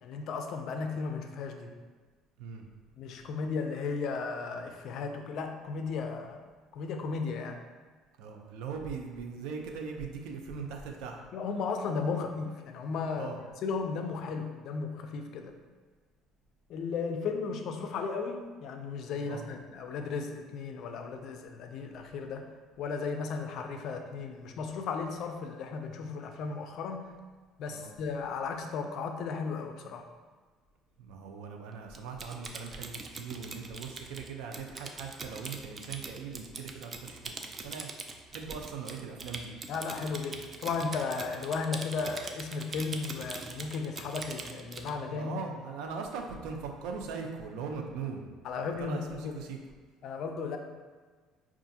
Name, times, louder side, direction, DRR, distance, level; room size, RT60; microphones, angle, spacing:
voice 1, 0.0-1.7 3.0-6.4 6.7-7.6 11.3-13.3 13.6-15.5 16.7-22.5 22.8-27.1 27.6-30.1 39.7-45.4 48.4-49.4 50.0-50.6, left 5 dB, 60° left, 5 dB, 0.4 m, -35 dB
voice 2, 8.2-11.2 13.2-13.4 19.2-19.5 27.7-27.9 31.0-37.9 38.3-39.5 45.1-48.2 48.6-49.6, right 5 dB, 80° right, 2 dB, 0.5 m, -40 dB
Typing, 31.9-44.9, right 3 dB, 30° right, 0.3 m, -42 dB
5.6 x 2.4 x 2.7 m, 1.4 s
cardioid pair, 125°, 0 cm